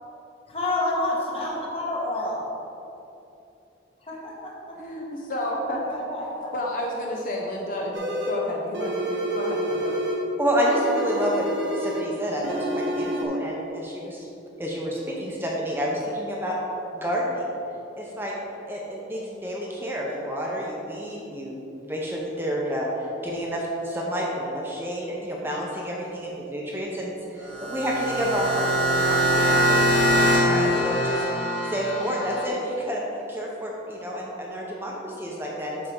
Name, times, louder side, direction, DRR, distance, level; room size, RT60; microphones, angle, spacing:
voice 1, 0.5-2.4 4.0-4.8 5.8-6.5, left 2 dB, 30° left, -3 dB, 1.3 m, -29 dB
voice 2, 4.8-5.8 6.5-10.0, left 1 dB, 45° left, -2 dB, 0.8 m, -31 dB
sound 1, 7.9-8.4 8.7-10.3 10.6-12.1 12.4-13.2, equal, 70° right, 1.1 m, -28 dB
voice 3, 10.4-11.5 11.7-14.3 14.6-16.6 16.9-17.5 18.0-18.3 18.7-22.9 23.2-31.2 31.6-33.0 33.3-35.8, equal, 10° right, -3 dB, 0.7 m, -29 dB
sound 2, 27.4-32.5, equal, 85° left, 1.2 m, -23 dB
7.9 x 5.8 x 3.8 m, 2.9 s
head